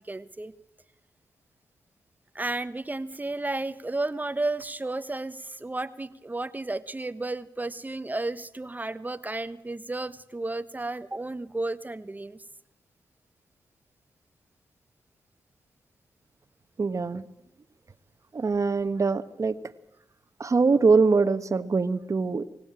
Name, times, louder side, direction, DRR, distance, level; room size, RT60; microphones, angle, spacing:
voice 1, 0.1-0.5 2.3-12.4, right 2 dB, 25° right, 12 dB, 1.1 m, -32 dB
voice 2, 16.8-17.3 18.3-19.6 20.4-22.5, right 4 dB, 45° right, 11 dB, 1.3 m, -23 dB
24.5 x 16.0 x 9.0 m, 0.86 s
supercardioid pair, 45°, 7 cm